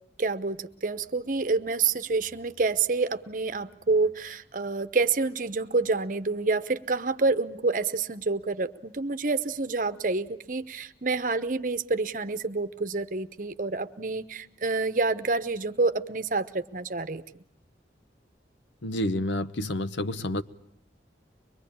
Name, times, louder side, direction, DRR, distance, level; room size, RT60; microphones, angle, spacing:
voice 1, 0.2-17.2, right 3 dB, 45° right, 12 dB, 0.9 m, -28 dB
voice 2, 18.8-20.4, left 1 dB, 90° left, 12 dB, 0.9 m, -29 dB
24.0 x 22.0 x 8.7 m, 0.70 s
head